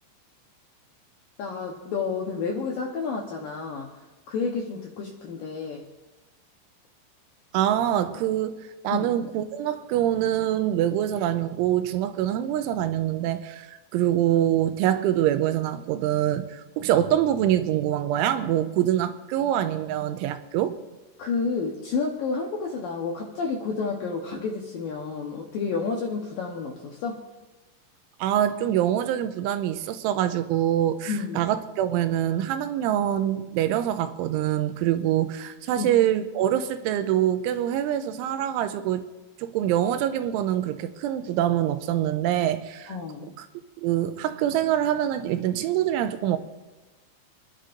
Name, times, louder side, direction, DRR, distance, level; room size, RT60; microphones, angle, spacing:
voice 1, 1.4-5.8 8.9-9.1 21.2-27.2 31.1-31.5 35.8-35.9 42.9-43.3, left 4 dB, 75° left, 2.1 m, -30 dB
voice 2, 7.5-20.8 28.2-39.0 39.4-42.9 43.8-46.4, right 11 dB, 90° right, 3.1 m, -25 dB
29.0 x 11.0 x 2.6 m
omnidirectional pair, 5.4 m